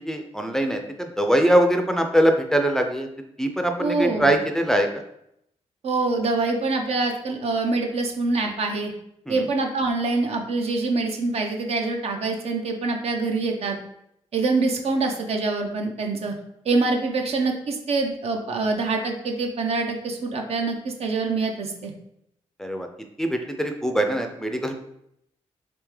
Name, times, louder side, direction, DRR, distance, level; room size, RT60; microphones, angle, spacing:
voice 1, 0.0-3.1 3.4-4.9 9.3-9.5 22.6-22.9 23.2-24.7, right 1 dB, 5° left, 4 dB, 0.4 m, -22 dB
voice 2, 3.8-4.3 5.8-8.9 9.3-13.8 14.3-16.3 16.6-21.9, right 3 dB, 65° right, 3 dB, 0.6 m, -25 dB
3.5 x 3.3 x 3.1 m, 0.77 s
cardioid pair, 80°, 11 cm